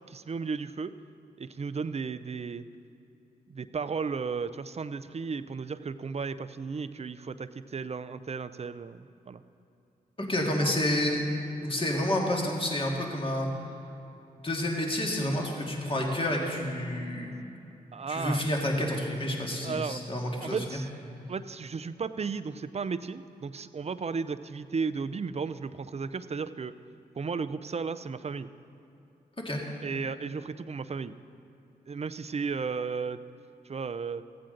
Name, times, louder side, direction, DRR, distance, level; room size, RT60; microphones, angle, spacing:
voice 1, 0.1-0.9 1.4-2.6 3.5-9.4 17.9-18.5 19.6-20.0 20.4-20.9 21.3-26.7 27.2-28.5 29.8-31.2 31.9-33.2 33.6-34.2, right 5 dB, 40° right, 12 dB, 0.5 m, -34 dB
voice 2, 10.2-11.2 11.6-13.5 14.4-17.4 18.1-20.6 29.4-29.6, left 1 dB, 30° left, -1 dB, 2.0 m, -29 dB
15.0 x 8.6 x 3.9 m, 2.8 s
supercardioid pair, 45°, 17 cm